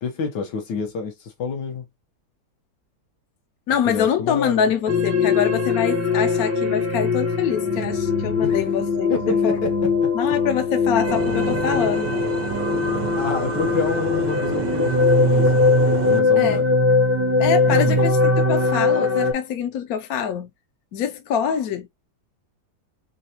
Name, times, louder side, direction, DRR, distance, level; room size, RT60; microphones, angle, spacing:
voice 1, 0.0-1.8 3.8-4.7 8.4-8.6 9.1-10.1 13.2-15.5 16.0-16.6 17.7-18.1, left 4 dB, 85° left, 1.7 m, -28 dB
voice 2, 3.7-9.6 10.1-12.1 16.4-16.6 17.4-18.2 18.5-20.5 20.9-21.9, left 8 dB, 70° left, 1.0 m, -25 dB
sound 1, 4.9-19.3, left 3 dB, 20° right, 0.4 m, -20 dB
sound 2, 11.1-16.2, right 8 dB, 65° right, 1.0 m, -30 dB
4.0 x 3.3 x 2.9 m
omnidirectional pair, 1.8 m